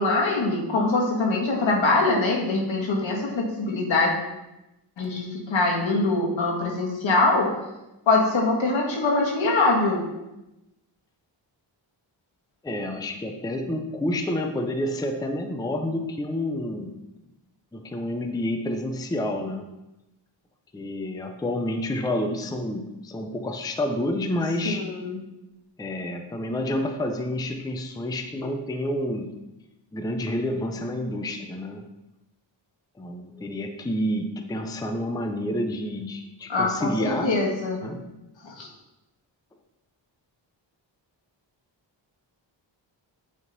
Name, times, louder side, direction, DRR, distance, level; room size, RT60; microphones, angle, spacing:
voice 1, 0.0-4.1 5.0-7.6 8.1-10.0 24.6-25.2 36.5-37.8 38.4-38.7, left 2 dB, 80° left, -1 dB, 1.5 m, -23 dB
voice 2, 12.6-17.0 17.7-19.7 20.7-24.9 25.8-29.4 29.9-31.9 33.0-37.5 37.8-38.0, left 1 dB, 10° left, 5 dB, 0.4 m, -29 dB
8.1 x 3.6 x 3.9 m, 0.95 s
wide cardioid pair, 125°, 45 cm